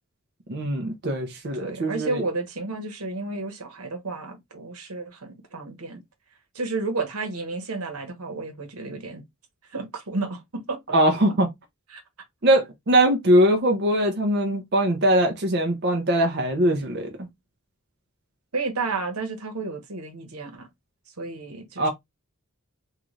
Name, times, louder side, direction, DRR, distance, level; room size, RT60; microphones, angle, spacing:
voice 1, 0.5-2.2 10.9-11.5 12.4-17.3 21.8-21.9, right 1 dB, 50° right, 0.6 m, -21 dB
voice 2, 1.5-6.0 6.5-9.2 9.7-10.8 11.9-12.0 18.5-20.7 21.2-21.9, right 3 dB, 90° right, 1.1 m, -32 dB
3.8 x 2.4 x 3.1 m
head